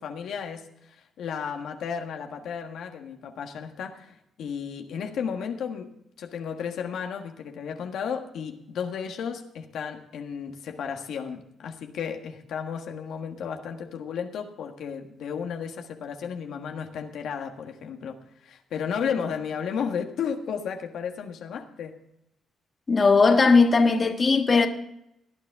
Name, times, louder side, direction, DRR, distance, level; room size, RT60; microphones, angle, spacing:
voice 1, 0.0-5.9 6.2-22.0, left 7 dB, 75° left, 1.5 m, -33 dB
voice 2, 22.9-24.7, left 4 dB, 35° left, 1.4 m, -18 dB
18.5 x 9.9 x 3.5 m
cardioid pair, 90°, 0 cm